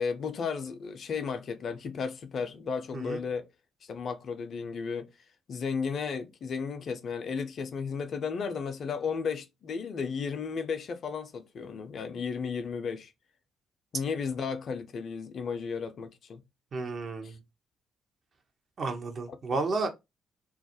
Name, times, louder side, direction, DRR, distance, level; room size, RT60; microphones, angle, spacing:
voice 1, 0.0-3.5 3.8-5.1 5.5-13.1 13.9-16.4 17.2-17.4 19.3-19.4, left 5 dB, 55° left, 0.4 m, -34 dB
voice 2, 16.7-17.4 18.8-19.9, right 3 dB, 50° right, 0.6 m, -32 dB
2.3 x 2.1 x 2.8 m
hypercardioid pair, 45°, 0 cm